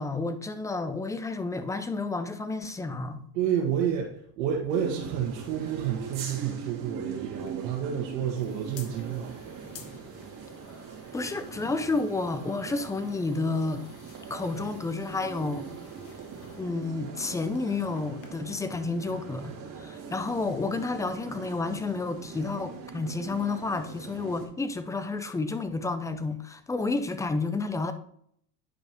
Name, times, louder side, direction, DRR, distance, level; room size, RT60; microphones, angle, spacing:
voice 1, 0.0-3.2 11.1-13.8 14.3-15.7 16.6-27.9, left 3 dB, 5° left, 0.4 m, -30 dB
voice 2, 3.3-9.3, right 8 dB, 80° right, 1.4 m, -30 dB
sound 1, 4.7-24.5, right 6 dB, 40° right, 2.6 m, -42 dB
sound 2, 7.3-18.3, left 7 dB, 80° left, 1.5 m, -54 dB
9.4 x 5.4 x 3.0 m
supercardioid pair, 105°, 49 cm